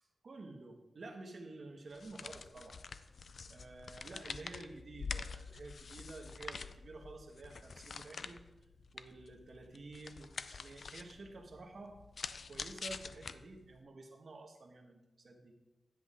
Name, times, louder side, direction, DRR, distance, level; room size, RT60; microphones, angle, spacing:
voice 1, 0.2-2.8 3.5-8.4 8.9-12.0 12.3-15.6, right 2 dB, 50° right, 2 dB, 1.4 m, -51 dB
sound 1, 1.9-13.8, left 5 dB, 55° left, 0.4 m, -47 dB
10.5 x 7.9 x 3.7 m, 0.97 s
wide cardioid pair, 145°, 0 cm